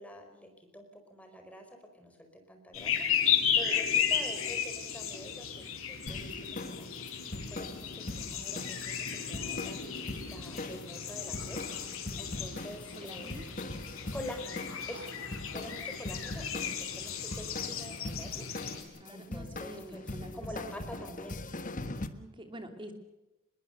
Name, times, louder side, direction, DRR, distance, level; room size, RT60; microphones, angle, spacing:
voice 1, 0.0-1.7 1.9-13.7 14.1-21.4, equal, 5° left, 4 dB, 4.8 m, -47 dB
sound 1, 2.7-18.8, left 8 dB, 85° left, 4.7 m, -34 dB
sound 2, 6.1-22.1, left 2 dB, 40° left, 1.4 m, -42 dB
voice 2, 12.9-13.4 19.0-20.7 21.0-21.2 21.8-22.9, right 1 dB, 25° right, 6 dB, 2.8 m, -47 dB
25.0 x 21.5 x 6.7 m, 1.0 s
head